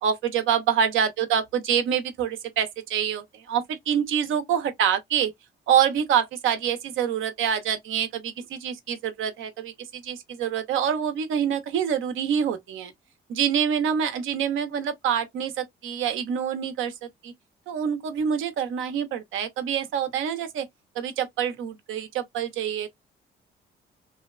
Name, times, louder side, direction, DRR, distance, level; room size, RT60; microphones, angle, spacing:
voice 1, 0.0-5.3 5.7-12.9 13.3-17.3 17.7-20.7 21.0-22.9, right 8 dB, 80° right, 0.7 m, -26 dB
2.7 x 2.1 x 2.3 m
cardioid pair, 90°, 20 cm